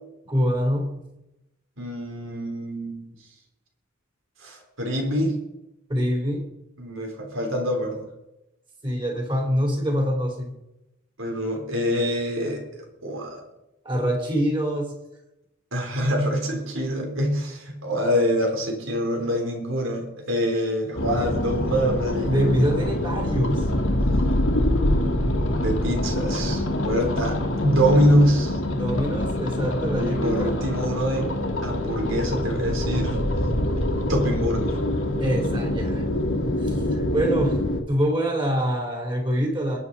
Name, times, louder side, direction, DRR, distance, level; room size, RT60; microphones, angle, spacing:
voice 1, 0.3-1.0 5.9-6.5 8.8-10.5 13.8-14.9 22.3-23.7 28.7-30.6 35.2-36.0 36.6-37.6 37.9-39.8, equal, 25° right, 1 dB, 3.7 m, -25 dB
voice 2, 1.8-3.0 4.4-5.4 6.8-8.1 11.2-12.6 13.0-13.4 15.7-22.9 25.5-28.6 30.0-31.3 31.6-33.2 34.1-34.7, equal, 80° right, 2 dB, 3.9 m, -25 dB
sound 1, 20.9-37.8, left 1 dB, 75° left, 2.1 m, -25 dB
22.0 x 9.2 x 4.2 m, 0.91 s
head